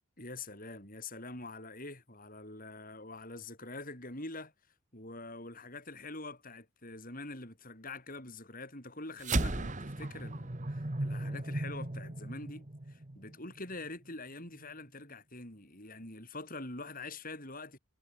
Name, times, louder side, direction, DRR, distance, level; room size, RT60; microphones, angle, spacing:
voice 1, 0.2-4.5 4.9-17.8, left 2 dB, 40° left, 7.6 m, -45 dB
sound 1, 9.2-13.8, right 2 dB, 35° right, 1.3 m, -36 dB
head